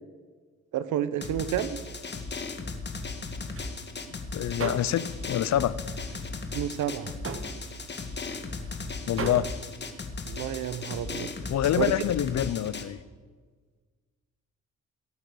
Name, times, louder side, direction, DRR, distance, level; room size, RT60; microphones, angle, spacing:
voice 1, 0.7-1.8 6.5-7.2 10.3-11.3 11.8-11.9, right 11 dB, 80° right, 15 dB, 1.0 m, -30 dB
Drum, 1.2-12.8, left 3 dB, 35° left, 1.9 m, -36 dB
sound 1, 3.3-5.3 5.6-10.0, right 6 dB, 45° right, 1.4 m, -40 dB
voice 2, 4.3-5.8 9.1-9.5 11.5-13.0, left 11 dB, 60° left, 18 dB, 0.7 m, -26 dB
18.0 x 8.5 x 7.9 m, 1.5 s
cardioid pair, 90°, 30 cm